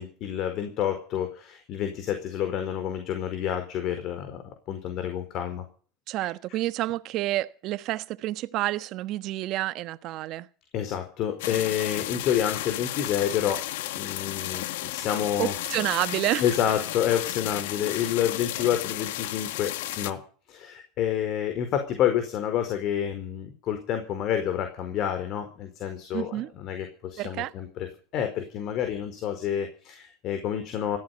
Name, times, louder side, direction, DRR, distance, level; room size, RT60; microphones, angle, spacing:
voice 1, 0.0-5.6 10.7-15.5 16.4-20.2 20.5-27.9 28.1-31.0, left 10 dB, 45° left, 4.5 m, -29 dB
voice 2, 6.1-10.5 15.4-16.4 26.1-26.5 27.2-27.5, right 16 dB, 50° right, 1.3 m, -29 dB
sound 1, 11.4-20.1, left 14 dB, 75° left, 1.5 m, -33 dB
17.5 x 14.5 x 5.5 m
supercardioid pair, 125°, 0 cm